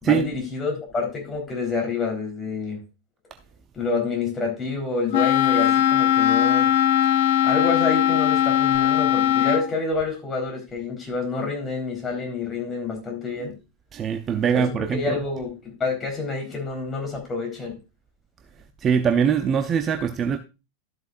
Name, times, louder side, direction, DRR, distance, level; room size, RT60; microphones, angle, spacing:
voice 1, 0.0-2.8 3.7-6.7 7.4-13.6 14.5-17.8, left 4 dB, 20° left, 3.9 m, -28 dB
Wind instrument woodwind instrument, 5.1-9.7, left 10 dB, 55° left, 0.7 m, -19 dB
voice 2, 13.9-15.2 18.8-20.4, right 7 dB, 25° right, 0.7 m, -22 dB
13.0 x 7.9 x 2.5 m
figure-of-eight pair, 90°, 0 cm